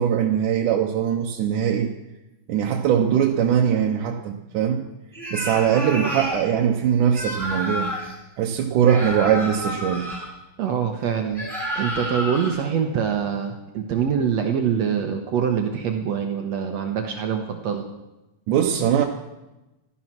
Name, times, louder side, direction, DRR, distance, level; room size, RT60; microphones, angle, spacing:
voice 1, 0.0-1.9 2.5-4.9 5.3-7.9 8.4-10.1 18.5-19.1, right 9 dB, 80° right, 1 dB, 2.5 m, -21 dB
sound 1, 5.1-6.4 7.1-8.1 8.8-10.3 11.3-12.5, equal, ahead, 6.7 m, -30 dB
voice 2, 10.6-11.5 11.8-17.9, right 7 dB, 65° right, 4 dB, 2.1 m, -24 dB
15.5 x 12.5 x 6.1 m, 1.0 s
omnidirectional pair, 3.6 m